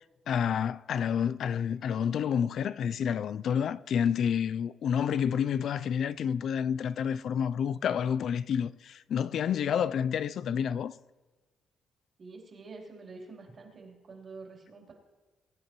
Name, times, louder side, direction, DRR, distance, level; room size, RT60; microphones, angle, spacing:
voice 1, 0.3-10.9, left 8 dB, 65° left, 0.4 m, -29 dB
voice 2, 12.2-14.9, right 3 dB, 45° right, 3.5 m, -47 dB
22.5 x 10.5 x 3.1 m
cardioid pair, 90°, 0 cm